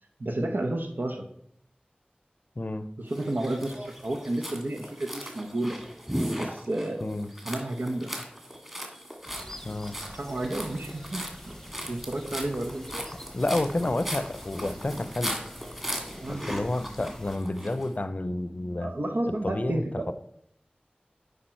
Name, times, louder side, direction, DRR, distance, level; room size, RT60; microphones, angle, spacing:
voice 1, 0.2-1.3 3.0-5.8 6.3-7.0 7.4-8.1 10.1-11.5 11.9-13.1 16.2-16.5 18.8-20.1, right 1 dB, 85° right, 4 dB, 0.8 m, -31 dB
voice 2, 2.6-2.9 7.0-7.3 9.6-10.0 13.3-15.3 16.3-18.9 19.4-20.1, left 2 dB, 50° left, 12 dB, 0.5 m, -30 dB
sound 1, 3.1-17.9, equal, 15° right, 1.7 m, -38 dB
sound 2, 9.2-17.4, left 1 dB, 10° left, 0.8 m, -46 dB
8.7 x 5.1 x 4.4 m, 0.70 s
wide cardioid pair, 40°, 3 cm